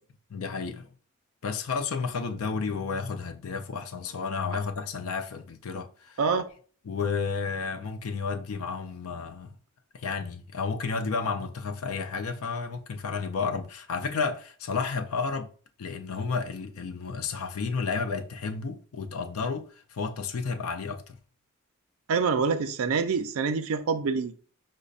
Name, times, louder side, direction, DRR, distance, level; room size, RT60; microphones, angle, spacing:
voice 1, 0.3-0.9 1.4-6.2 6.8-9.6 9.9-15.5 15.8-21.2, left 5 dB, 80° left, 0.4 m, -32 dB
voice 2, 22.1-24.3, right 5 dB, 75° right, 0.4 m, -26 dB
5.2 x 2.1 x 2.4 m
head